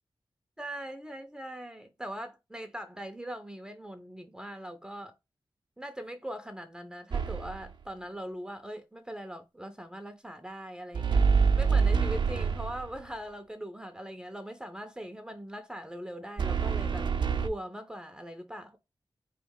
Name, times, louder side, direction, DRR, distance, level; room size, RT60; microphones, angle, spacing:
voice 1, 0.6-5.1 5.8-17.1 17.4-18.8, right 1 dB, 10° right, 0.5 m, -41 dB
sound 1, 7.1-7.7 10.9-13.0 16.4-17.5, right 5 dB, 65° right, 0.6 m, -26 dB
3.8 x 3.1 x 3.5 m
wide cardioid pair, 100°, 9 cm